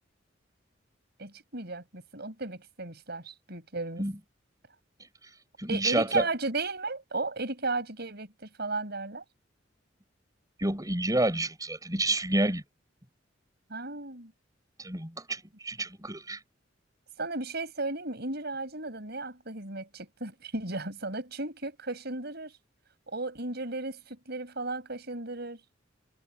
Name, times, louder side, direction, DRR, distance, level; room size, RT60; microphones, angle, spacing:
voice 1, 1.2-4.0 5.7-9.2 13.7-14.3 17.2-22.6 23.1-25.6, right 3 dB, 60° right, 6.6 m, -35 dB
voice 2, 5.6-6.2 10.6-12.6 14.8-16.4, right 1 dB, 20° right, 7.4 m, -29 dB
head